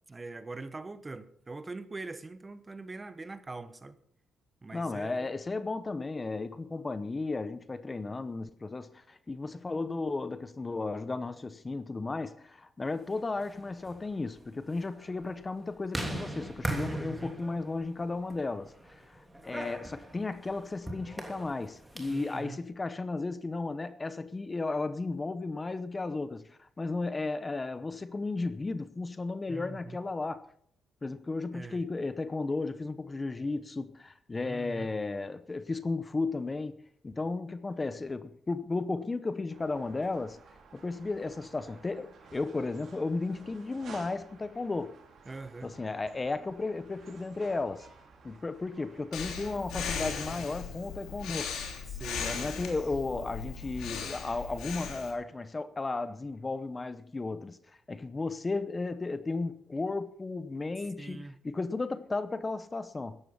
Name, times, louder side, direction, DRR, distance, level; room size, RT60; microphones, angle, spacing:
voice 1, 0.1-4.0 4.6-5.3 16.9-17.3 22.1-22.6 29.5-30.0 31.5-31.8 34.4-34.9 45.3-45.7 51.9-52.5 61.0-61.3, right 3 dB, 25° right, 1.2 m, -42 dB
voice 2, 4.7-30.4 31.0-36.8 37.0-40.4 40.7-45.0 45.6-47.9 48.2-51.5 52.2-63.2, left 3 dB, 25° left, 0.9 m, -34 dB
sound 1, 13.2-22.3, right 1 dB, 10° right, 3.0 m, -40 dB
sound 2, 39.5-51.5, right 4 dB, 60° right, 4.3 m, -55 dB
Breathing, 49.1-55.1, left 6 dB, 80° left, 3.4 m, -38 dB
14.0 x 10.5 x 5.6 m
cardioid pair, 90°, 0 cm